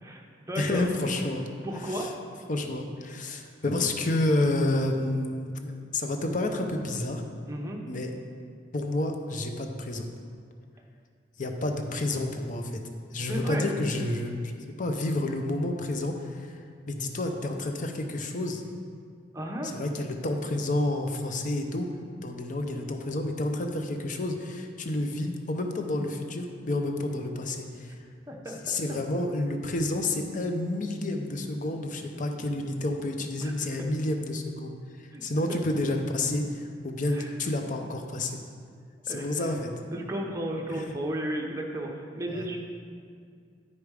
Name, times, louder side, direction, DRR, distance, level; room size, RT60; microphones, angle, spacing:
voice 1, 0.0-0.9 1.6-2.1 7.5-7.8 13.3-13.7 19.3-19.8 28.3-28.6 33.4-33.5 35.1-35.2 35.5-35.6 37.1-37.3 39.1-39.5 39.9-42.6, right 1 dB, 15° right, 0 dB, 0.9 m, -34 dB
voice 2, 0.6-1.5 1.7-2.1 2.5-7.2 7.9-8.1 8.7-10.1 11.4-12.8 13.1-14.5 14.8-16.6 16.9-18.6 19.6-21.9 22.2-28.0 28.6-38.4 39.0-39.7 40.7-40.8 42.3-42.5, left 2 dB, 45° left, 4 dB, 0.7 m, -30 dB
9.9 x 5.0 x 4.8 m, 2.2 s
head